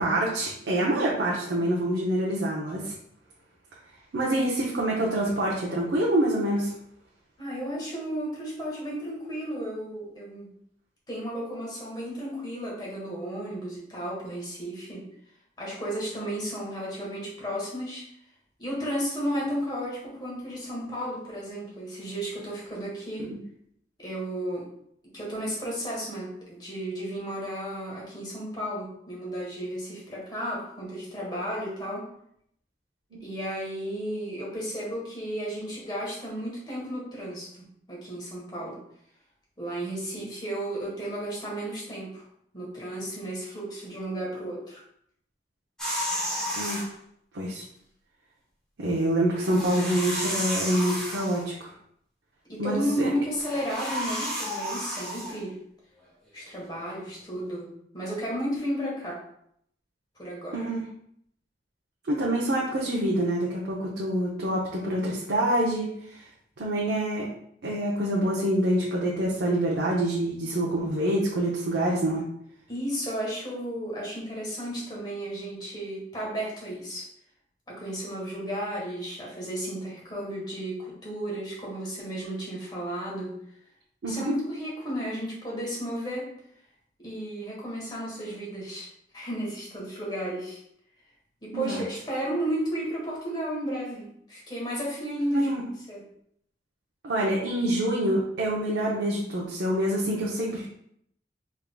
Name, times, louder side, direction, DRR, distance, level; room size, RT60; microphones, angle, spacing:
voice 1, 0.0-2.9 4.1-6.7 23.2-23.3 33.1-33.2 40.2-40.3 46.6-46.8 47.3-47.6 48.8-51.7 52.6-53.1 60.5-60.8 62.1-66.3 66.6-67.3 67.6-72.3 84.0-84.3 91.5-91.8 95.3-95.6 97.0-100.7, right 1 dB, 80° right, -4 dB, 0.6 m, -26 dB
voice 2, 7.4-10.5 11.1-15.1 15.6-18.0 18.6-23.3 24.0-24.7 25.0-32.1 33.2-38.8 39.6-42.2 42.5-44.8 52.4-55.6 56.3-59.2 60.2-60.7 72.7-77.0 77.7-83.4 84.0-86.3 87.0-88.9 89.1-90.6 91.4-95.5 95.9-96.0, equal, 25° left, -5 dB, 1.2 m, -33 dB
sound 1, 45.8-46.9 49.3-51.5 53.3-55.4, equal, 5° left, 1.0 m, -32 dB
3.5 x 3.4 x 2.2 m, 0.69 s
head